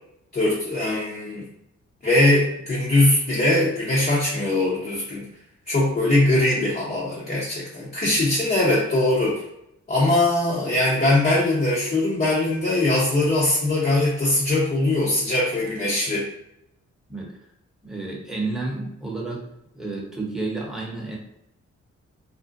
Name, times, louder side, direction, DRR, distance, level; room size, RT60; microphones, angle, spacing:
voice 1, 0.3-1.4 2.0-5.2 5.7-9.4 9.9-16.3, left 2 dB, 30° left, -6 dB, 0.7 m, -21 dB
voice 2, 17.8-19.5 19.7-21.2, right 3 dB, ahead, -3 dB, 0.9 m, -30 dB
2.5 x 2.1 x 2.5 m, 0.80 s
cardioid pair, 60°, 30 cm